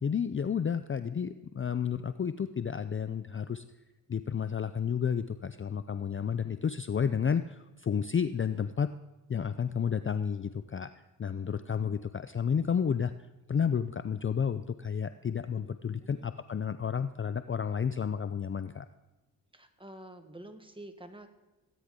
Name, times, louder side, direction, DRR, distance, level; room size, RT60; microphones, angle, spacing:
voice 1, 0.0-3.6 4.1-8.9 9.3-10.9 11.2-13.1 13.5-18.9, left 7 dB, 30° left, 12 dB, 0.5 m, -31 dB
voice 2, 19.5-21.3, right 1 dB, 10° right, 7 dB, 1.5 m, -48 dB
16.5 x 9.5 x 3.8 m, 1.0 s
supercardioid pair, 50°, 41 cm